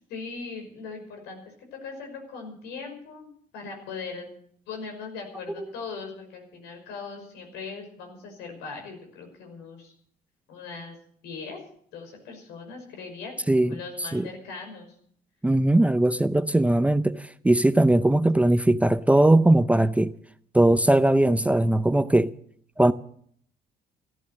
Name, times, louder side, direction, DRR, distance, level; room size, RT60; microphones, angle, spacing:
voice 1, 0.1-1.5 1.8-4.3 4.7-9.9 10.5-11.0 11.2-11.6 11.9-14.9, left 4 dB, 90° left, 5.7 m, -39 dB
voice 2, 13.5-14.3 15.4-20.1 20.5-22.3 22.8-22.9, right 1 dB, 10° right, 0.6 m, -20 dB
14.0 x 14.0 x 6.6 m
cardioid pair, 110°, 17 cm